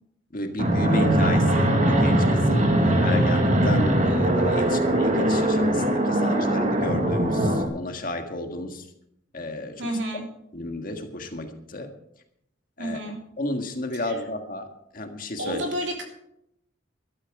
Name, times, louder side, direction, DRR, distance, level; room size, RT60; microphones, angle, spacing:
voice 1, 0.3-8.9 9.3-9.9 10.5-11.9 12.8-13.0 13.4-14.7 14.9-15.6, left 1 dB, 50° left, 5 dB, 1.7 m, -32 dB
Fixed-wing aircraft airplane, 0.6-7.7, right 1 dB, 40° right, 1.8 m, -21 dB
voice 2, 9.8-10.2 12.8-13.2 13.9-14.2 15.4-16.0, right 1 dB, 75° right, 2 dB, 3.2 m, -30 dB
12.5 x 12.5 x 4.9 m, 0.76 s
head